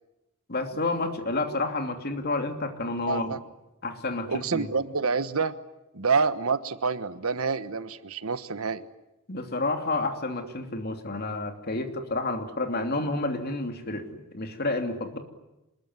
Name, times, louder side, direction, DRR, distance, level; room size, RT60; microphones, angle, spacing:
voice 1, 0.5-3.3 3.8-4.7 9.3-15.2, left 2 dB, 45° left, 6 dB, 2.9 m, -30 dB
voice 2, 3.1-3.4 4.3-5.5 5.9-8.9, right 5 dB, 70° right, 13 dB, 1.3 m, -27 dB
26.5 x 21.0 x 9.7 m, 0.97 s
head